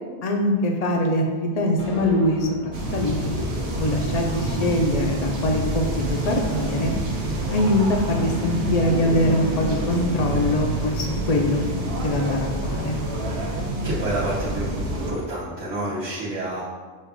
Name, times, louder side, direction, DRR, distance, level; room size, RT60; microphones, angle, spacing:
voice 1, 0.2-3.3 3.6-6.9 7.5-11.6 12.0-13.0, left 1 dB, 45° left, 1 dB, 0.5 m, -23 dB
sound 1, 1.8-6.2, equal, 15° right, 0.6 m, -42 dB
sound 2, 2.7-15.1, right 1 dB, 60° right, 0.9 m, -27 dB
voice 2, 13.8-16.6, right 1 dB, 90° right, -10 dB, 1.3 m, -29 dB
6.6 x 2.3 x 3.5 m, 1.5 s
omnidirectional pair, 1.2 m